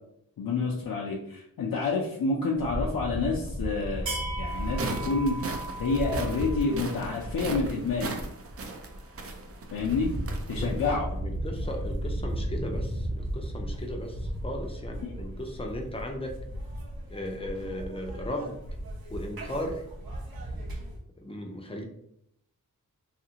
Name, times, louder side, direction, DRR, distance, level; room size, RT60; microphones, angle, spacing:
voice 1, 0.4-5.4 5.8-8.1 9.7-10.1 10.5-11.1 15.0-15.2, left 3 dB, 70° left, -3 dB, 0.5 m, -29 dB
sound 1, 2.5-21.0, right 1 dB, 80° right, 0.8 m, -35 dB
sound 2, 4.5-10.9, right 3 dB, 40° right, 0.5 m, -38 dB
voice 2, 10.5-10.8 11.1-16.4 17.1-18.6 19.1-19.8 21.2-21.9, left 1 dB, 15° left, 2 dB, 0.5 m, -36 dB
2.8 x 2.4 x 2.8 m, 0.73 s
wide cardioid pair, 90°, 35 cm